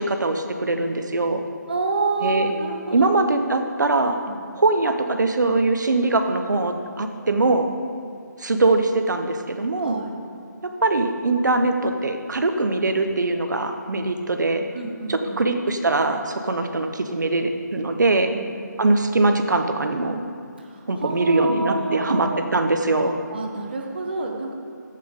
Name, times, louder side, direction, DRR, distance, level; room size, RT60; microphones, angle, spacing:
voice 1, 0.0-1.4 2.2-2.5 2.9-4.2 4.5-7.7 8.4-10.0 10.6-14.6 15.1-18.3 18.8-20.2 20.9-23.2, right 2 dB, 70° right, 7 dB, 1.0 m, -22 dB
voice 2, 1.7-3.2 4.3-4.4 9.8-10.1 14.7-15.4 18.3-18.5 20.6-22.4 23.3-24.5, right 3 dB, 30° right, 3 dB, 0.9 m, -28 dB
11.0 x 8.5 x 3.7 m, 2.4 s
figure-of-eight pair, 175°, 10 cm